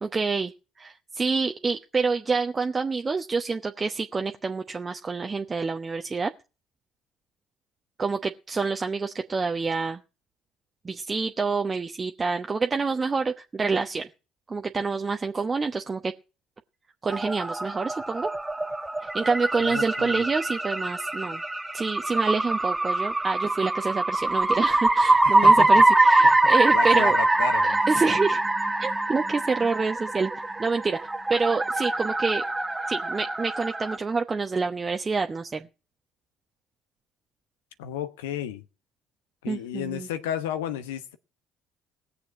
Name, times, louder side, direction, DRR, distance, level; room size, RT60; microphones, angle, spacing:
voice 1, 0.0-0.5 0.8-6.3 8.0-10.0 10.8-14.1 14.5-16.1 17.0-18.3 19.0-21.4 21.7-27.2 27.9-28.4 28.8-32.4 32.9-35.7 39.5-40.1, right 4 dB, 30° right, 1.0 m, -27 dB
sound 1, 17.1-34.0, right 2 dB, 10° right, 1.6 m, -23 dB
voice 2, 19.6-20.2 25.1-25.8 26.2-27.9 37.8-38.6 39.4-41.2, left 10 dB, 75° left, 1.0 m, -33 dB
19.0 x 7.1 x 5.9 m
figure-of-eight pair, 55°, 0 cm